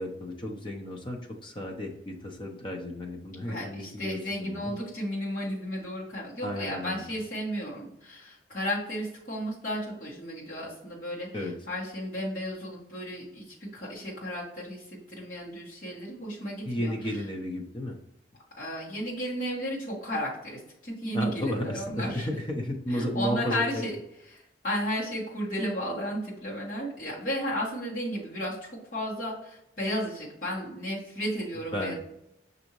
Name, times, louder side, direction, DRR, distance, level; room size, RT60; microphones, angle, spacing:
voice 1, 0.0-4.7 6.4-7.0 11.3-11.5 16.7-18.0 21.1-23.9 31.7-31.9, left 1 dB, 25° left, 2 dB, 0.7 m, -33 dB
voice 2, 3.5-16.9 18.6-22.3 22.9-23.9 24.3-31.9, equal, 45° left, -7 dB, 1.5 m, -33 dB
6.2 x 2.7 x 3.0 m, 0.83 s
head